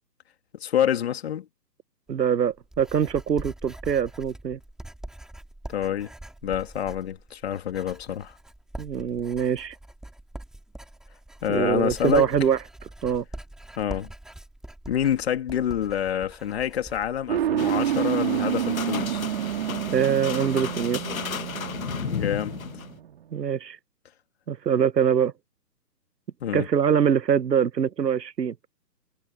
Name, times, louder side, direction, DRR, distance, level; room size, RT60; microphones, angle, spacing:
voice 1, 0.5-1.5 5.7-6.1 6.4-8.3 11.4-12.3 13.8-14.1 14.9-19.3 22.0-22.6 26.4-26.7, left 10 dB, 40° left, 2.9 m, -27 dB
Writing, 2.1-17.5, right 1 dB, ahead, 3.6 m, -43 dB
voice 2, 2.1-4.6 8.8-9.8 11.5-12.6 13.0-13.2 19.9-21.0 23.3-23.8 24.5-25.3 26.5-28.5, right 8 dB, 80° right, 1.1 m, -23 dB
sound 1, 17.3-23.3, right 11 dB, 35° right, 3.3 m, -29 dB
sound 2, 17.6-23.0, left 8 dB, 55° left, 1.8 m, -34 dB
hypercardioid pair, 155°, 49 cm